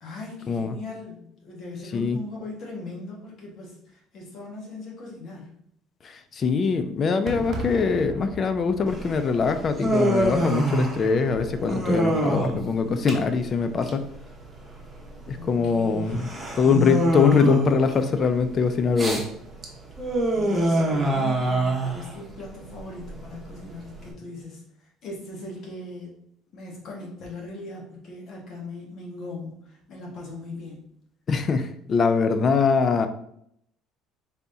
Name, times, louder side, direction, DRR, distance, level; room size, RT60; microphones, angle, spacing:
voice 1, 0.0-5.5 15.4-16.4 20.3-26.1 26.5-30.9, left 2 dB, 55° left, -2 dB, 1.5 m, -39 dB
voice 2, 6.3-14.1 15.3-16.3 16.6-19.2 31.3-33.1, left 5 dB, 40° left, 9 dB, 0.4 m, -22 dB
Fireworks, 7.3-12.3, right 1 dB, 45° right, 0.8 m, -39 dB
Human voice, 8.9-24.1, right 1 dB, 20° right, 1.0 m, -26 dB
4.1 x 3.4 x 2.7 m, 0.72 s
cardioid pair, 110°, 0 cm